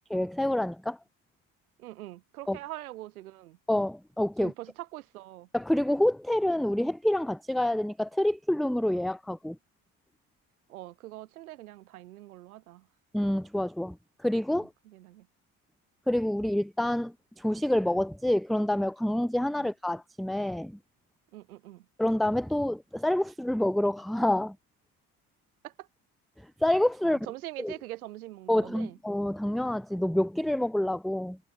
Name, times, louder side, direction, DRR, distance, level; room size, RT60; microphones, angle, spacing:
voice 1, 0.1-1.0 2.5-2.6 3.7-4.5 5.5-9.6 13.1-14.0 14.2-14.7 16.1-20.8 22.0-24.6 26.6-27.3 27.6-27.7 28.5-31.4, left 1 dB, ahead, 0.3 m, -27 dB
voice 2, 1.8-3.6 4.4-5.5 10.7-12.9 14.5-15.3 19.6-19.7 21.3-21.9 25.6-25.9 27.0-29.0, right 16 dB, 85° right, 1.2 m, -43 dB
hypercardioid pair, 55°, 43 cm